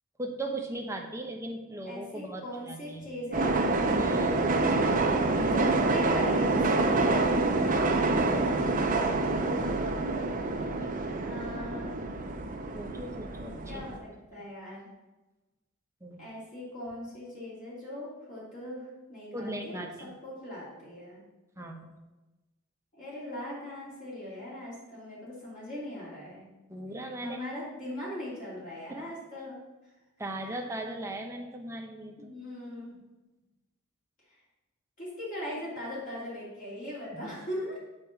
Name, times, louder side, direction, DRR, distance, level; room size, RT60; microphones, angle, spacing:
voice 1, 0.2-3.1 4.0-4.5 7.7-8.1 10.3-11.0 12.7-13.8 16.0-16.2 19.3-20.1 21.6-21.9 26.7-27.4 28.9-29.1 30.2-32.3 37.1-37.3, right 1 dB, 15° right, 2 dB, 0.9 m, -38 dB
voice 2, 1.8-3.6 5.4-7.5 11.2-12.0 13.7-14.9 16.2-21.2 22.9-26.5 27.2-29.6 32.2-32.9 35.0-37.8, left 1 dB, 40° left, -7 dB, 2.9 m, -40 dB
sound 1, 3.3-14.0, right 2 dB, 40° right, 0.7 m, -27 dB
8.4 x 4.5 x 5.9 m, 1.1 s
head